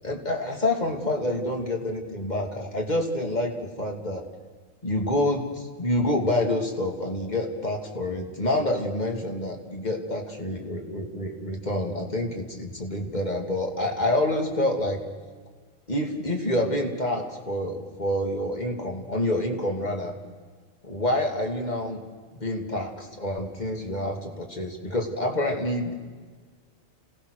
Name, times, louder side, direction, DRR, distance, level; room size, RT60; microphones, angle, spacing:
voice 1, 0.0-4.2 4.8-15.0 15.9-20.1 20.8-22.1 22.3-25.9, left 1 dB, 30° left, 2 dB, 2.8 m, -27 dB
27.5 x 18.0 x 6.5 m, 1.5 s
omnidirectional pair, 1.4 m